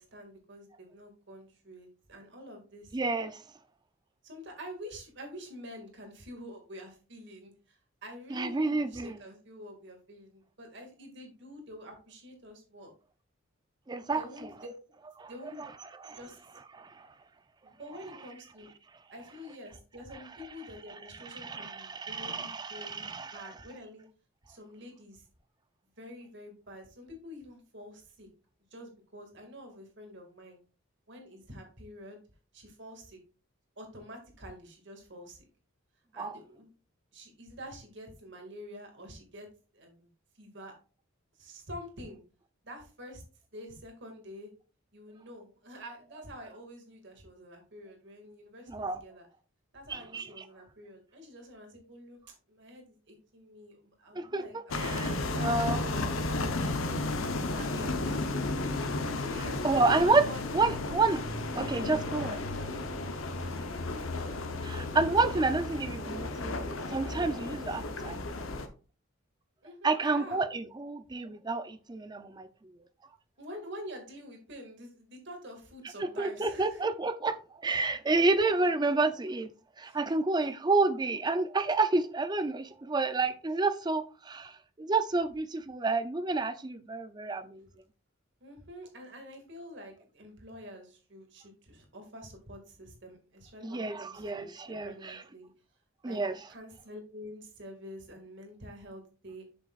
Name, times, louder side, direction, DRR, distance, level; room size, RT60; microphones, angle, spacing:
voice 1, 0.0-3.0 4.2-12.9 14.1-14.7 15.3-15.7 16.1-16.4 17.6-18.7 19.1-24.1 24.5-25.3 26.0-28.3 28.7-30.6 31.1-32.2 32.5-33.2 33.8-35.4 36.1-36.7 37.1-39.5 39.7-40.1 40.3-40.7 41.4-42.2 42.6-43.2 43.5-44.5 44.9-49.3 49.7-56.1 56.5-59.8 60.3-60.4 69.6-70.4 73.4-76.8 79.9-80.0 88.4-95.5 96.0-96.2 96.5-99.4, equal, 60° right, 2.1 m, -47 dB
voice 2, 2.9-3.4 8.3-9.1 13.9-14.2 15.2-15.3 16.0-16.2 16.7-17.1 21.4-23.4 36.2-36.4 48.7-49.0 49.9-50.3 54.1-54.4 54.8-55.8 59.6-60.2 60.5-61.2 61.6-62.4 64.6-68.5 69.8-72.5 76.0-77.4 77.6-79.5 79.8-84.5 84.8-87.7 93.6-95.2 96.0-96.3, right 3 dB, 20° right, 0.5 m, -29 dB
sound 1, 54.7-68.7, left 2 dB, 80° left, 0.9 m, -33 dB
7.8 x 6.6 x 2.4 m
head